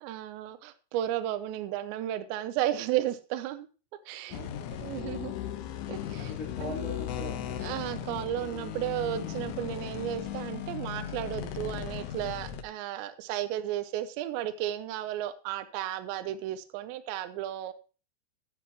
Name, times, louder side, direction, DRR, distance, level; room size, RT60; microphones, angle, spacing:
voice 1, 0.0-3.7 4.1-4.5 4.8-5.3 5.9-6.3 6.6-6.8 7.6-17.7, right 12 dB, 80° right, 10 dB, 2.8 m, -33 dB
sound 1, 4.3-12.6, left 9 dB, 85° left, 3.5 m, -37 dB
voice 2, 4.3-5.2 6.2-7.7, left 2 dB, 25° left, -2 dB, 4.2 m, -41 dB
13.5 x 8.0 x 3.0 m, 0.35 s
omnidirectional pair, 5.5 m